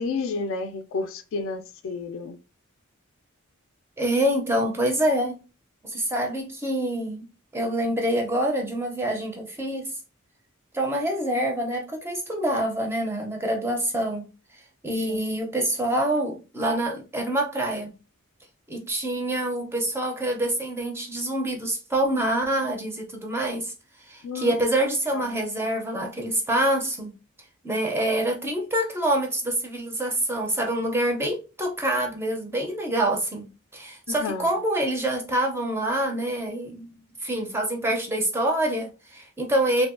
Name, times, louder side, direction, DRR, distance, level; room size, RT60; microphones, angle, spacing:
voice 1, 0.0-2.4 15.1-15.2 24.2-24.5 25.1-25.4 34.1-34.5, left 4 dB, 60° left, 0.3 m, -31 dB
voice 2, 4.0-5.4 5.8-7.3 7.5-9.9 10.7-14.3 14.8-17.9 18.7-23.7 24.0-27.1 27.6-33.5 33.7-36.9 37.2-39.9, right 1 dB, 10° right, 0.4 m, -26 dB
2.6 x 2.2 x 2.4 m
head